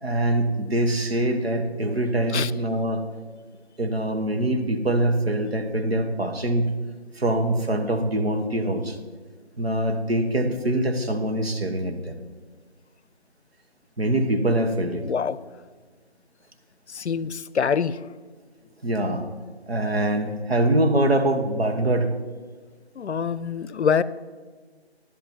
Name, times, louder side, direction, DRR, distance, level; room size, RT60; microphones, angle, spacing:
voice 1, 0.0-3.0 3.8-6.7 7.1-9.0 9.6-12.2 14.0-15.1 18.8-19.3 19.7-22.1, right 1 dB, 65° right, 5 dB, 1.4 m, -24 dB
voice 2, 15.0-15.4 16.9-18.0 23.0-24.0, left 6 dB, 85° left, 18 dB, 0.5 m, -25 dB
10.5 x 7.8 x 4.6 m, 1.4 s
figure-of-eight pair, 170°, 33 cm